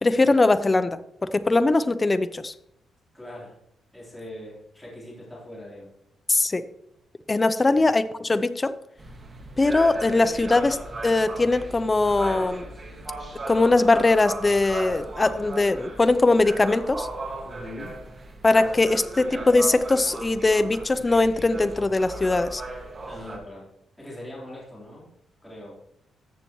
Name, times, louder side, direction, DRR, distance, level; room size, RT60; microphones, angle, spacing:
voice 1, 0.0-2.5 6.3-6.6 7.3-8.7 9.6-12.6 13.5-17.1 18.4-22.6, left 2 dB, 20° left, 12 dB, 0.5 m, -21 dB
voice 2, 3.1-3.6 3.9-5.9 7.6-7.9 17.4-18.0 23.1-23.7 24.0-25.1 25.4-25.8, left 1 dB, 5° left, -6 dB, 3.7 m, -41 dB
sound 1, 9.0-23.4, right 2 dB, 35° right, 1.9 m, -37 dB
14.0 x 6.7 x 3.1 m, 0.76 s
cardioid pair, 110°, 0 cm